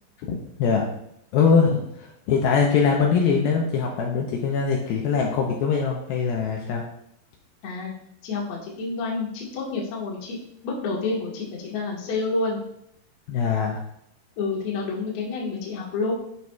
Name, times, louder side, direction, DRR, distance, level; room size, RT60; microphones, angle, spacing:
voice 1, 0.3-0.9 1.3-6.9 13.3-13.8, left 5 dB, 80° left, -1 dB, 2.4 m, -22 dB
voice 2, 7.6-7.9 8.2-12.6 14.4-16.1, left 3 dB, 55° left, -4 dB, 2.1 m, -29 dB
11.0 x 5.9 x 2.3 m, 0.74 s
omnidirectional pair, 4.7 m